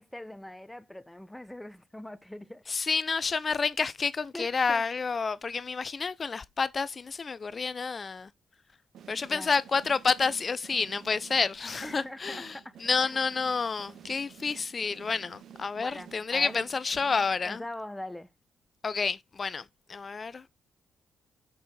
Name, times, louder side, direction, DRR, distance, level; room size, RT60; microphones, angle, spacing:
voice 1, 0.0-2.6 4.3-4.8 9.3-9.5 11.8-12.7 13.0-13.1 15.8-16.6 17.4-18.3, left 1 dB, 10° left, 1.1 m, -42 dB
voice 2, 2.7-8.3 9.1-12.5 12.8-17.6 18.8-19.6 19.9-20.6, left 5 dB, 40° left, 0.6 m, -29 dB
sound 1, 8.9-17.7, right 9 dB, 65° right, 1.0 m, -52 dB
6.9 x 6.4 x 3.9 m
hypercardioid pair, 40°, 0 cm